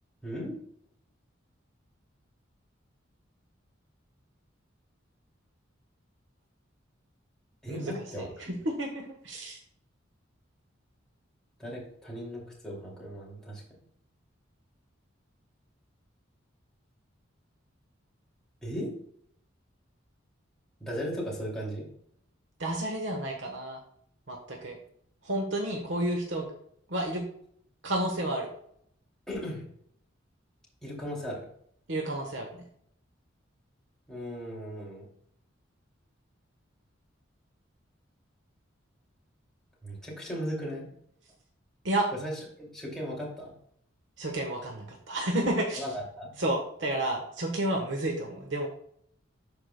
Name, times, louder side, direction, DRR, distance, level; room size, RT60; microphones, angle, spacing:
voice 1, 0.2-0.6 7.6-8.4 11.6-13.6 18.6-18.9 20.8-21.9 29.3-29.6 30.8-31.5 34.1-35.1 39.8-40.9 42.2-43.5 45.8-46.3, equal, 5° left, -5 dB, 2.5 m, -37 dB
voice 2, 8.2-9.6 22.6-23.8 24.3-24.8 25.2-26.5 26.9-27.2 27.8-28.5 31.9-32.6 41.8-42.1 44.2-45.8 46.4-48.7, right 1 dB, 65° right, 1 dB, 1.2 m, -31 dB
12.0 x 4.8 x 2.2 m, 0.66 s
head